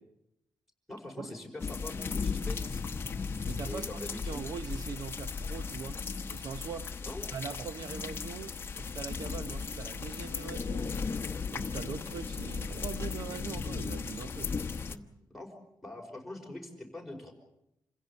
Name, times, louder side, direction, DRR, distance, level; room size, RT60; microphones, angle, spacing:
voice 1, 0.9-2.9 3.7-4.5 7.0-7.3 14.9-15.5 15.8-17.3, left 2 dB, ahead, 5.2 m, -43 dB
sound 1, 1.6-15.0, left 5 dB, 30° left, 1.0 m, -36 dB
voice 2, 3.4-4.0 4.3-6.0 6.3-7.0 7.3-10.9 11.5-14.5, right 6 dB, 60° right, 0.8 m, -42 dB
27.5 x 16.0 x 8.5 m
wide cardioid pair, 150°, 7 cm